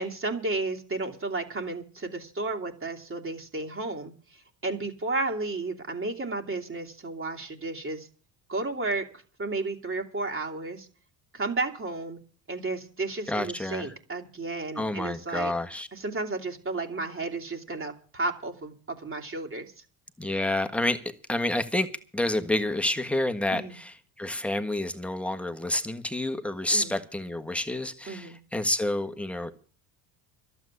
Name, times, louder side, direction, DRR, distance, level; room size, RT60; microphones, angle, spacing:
voice 1, 0.0-8.1 8.5-9.1 9.4-10.9 11.3-12.2 12.5-15.5 15.9-19.7 23.5-23.8 26.7-27.0 28.1-28.4, right 3 dB, 25° right, 2.9 m, -33 dB
voice 2, 13.3-13.9 14.8-15.9 20.2-21.0 21.3-29.5, left 1 dB, 5° left, 1.5 m, -29 dB
12.0 x 8.2 x 9.8 m
supercardioid pair, 90°, 47 cm